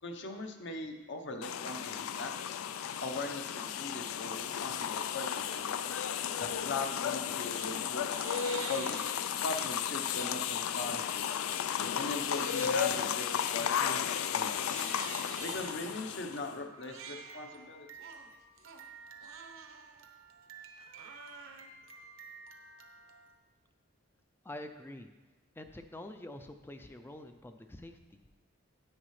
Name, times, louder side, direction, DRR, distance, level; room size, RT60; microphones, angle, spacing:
voice 1, 0.0-2.3 3.0-5.7 6.4-8.2 8.7-9.0 9.4-11.3 11.9-14.7 15.4-18.1, left 2 dB, 55° left, 5 dB, 0.8 m, -40 dB
sound 1, 1.4-16.6, left 8 dB, 85° left, 0.4 m, -34 dB
Crying sobbing, 7.1-7.7 8.1-10.1 10.6-10.9 11.4-23.4, right 6 dB, 70° right, 0.8 m, -49 dB
voice 2, 24.4-25.1 25.6-28.0, left 1 dB, 10° left, 7 dB, 0.4 m, -46 dB
9.9 x 9.1 x 3.2 m, 1.3 s
head